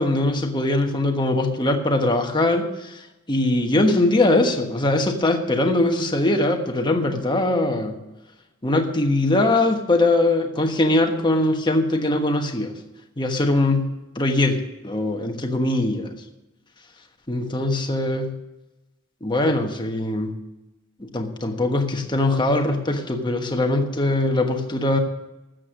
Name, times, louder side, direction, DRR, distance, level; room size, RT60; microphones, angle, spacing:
voice 1, 0.0-3.0 3.3-8.0 8.6-12.7 13.2-16.1 17.3-18.3 19.2-20.4 21.0-25.0, left 2 dB, 20° left, 4 dB, 1.3 m, -21 dB
13.5 x 7.7 x 6.3 m, 1.0 s
head